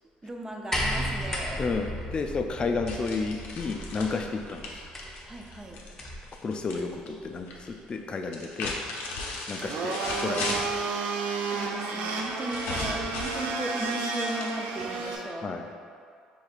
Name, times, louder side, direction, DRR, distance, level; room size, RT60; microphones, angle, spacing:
voice 1, 0.2-1.7 5.2-5.8 10.4-10.6 11.5-15.7, right 1 dB, 20° right, 1 dB, 0.5 m, -37 dB
sound 1, 0.7-6.3 7.4-7.5, equal, 15° left, 0.8 m, -35 dB
voice 2, 1.6-4.7 6.4-8.8 9.5-10.8 15.4-15.6, left 4 dB, 30° left, 4 dB, 0.4 m, -32 dB
sound 2, 2.9-6.8 7.1-7.7 8.2-10.9 12.2-14.8, left 3 dB, 75° left, 0.6 m, -36 dB
Domestic sounds home sounds, 9.6-15.2, right 4 dB, 70° right, 0.5 m, -31 dB
5.0 x 3.4 x 2.4 m, 2.2 s
supercardioid pair, 85°, 3 cm